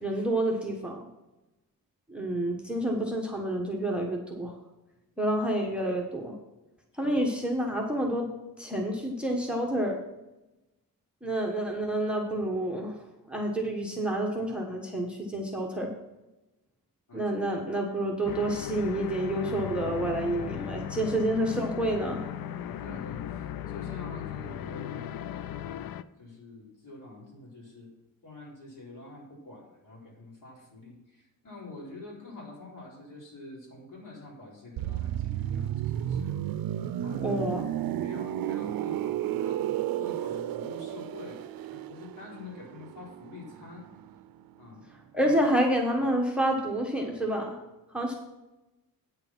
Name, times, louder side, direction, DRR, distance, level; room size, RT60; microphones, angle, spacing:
voice 1, 0.0-1.1 2.1-4.5 5.2-6.3 6.9-8.3 8.6-10.0 11.2-13.0 13.3-15.9 17.1-22.2 37.2-37.6 45.1-47.6 47.9-48.1, right 1 dB, 5° right, 1 dB, 1.1 m, -28 dB
sound 1, 18.3-26.0, left 10 dB, 85° left, 0.5 m, -37 dB
voice 2, 22.6-27.9 28.2-36.4 36.7-37.3 38.0-43.9 44.6-44.8 45.2-45.4, left 2 dB, 60° left, -3 dB, 4.2 m, -47 dB
sound 2, 34.8-44.4 44.7-44.9, right 11 dB, 75° right, 0.5 m, -33 dB
9.0 x 6.9 x 5.9 m, 1.0 s
wide cardioid pair, 150°, 35 cm